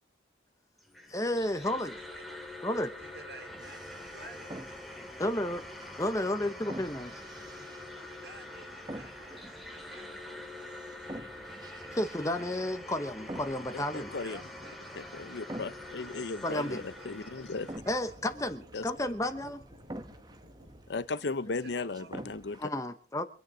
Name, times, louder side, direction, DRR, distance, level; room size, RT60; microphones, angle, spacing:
sound 1, 0.8-17.8, left 1 dB, ahead, 2.9 m, -45 dB
voice 1, 1.1-2.0 2.6-2.9 5.2-5.6 6.0-7.2 11.9-14.2 16.4-16.8 17.9-19.6 22.6-23.2, left 1 dB, 15° left, 0.9 m, -32 dB
voice 2, 2.8-4.5 6.4-10.3 14.1-15.7 16.5-18.2 21.4-22.1, right 2 dB, 60° right, 5.0 m, -53 dB
sound 2, 3.5-22.6, right 1 dB, 20° right, 1.0 m, -48 dB
sound 3, 14.7-21.0, equal, 40° right, 4.6 m, -57 dB
voice 3, 15.0-17.7 18.7-18.8 20.9-22.7, left 3 dB, 70° left, 0.7 m, -36 dB
25.0 x 9.7 x 5.0 m
head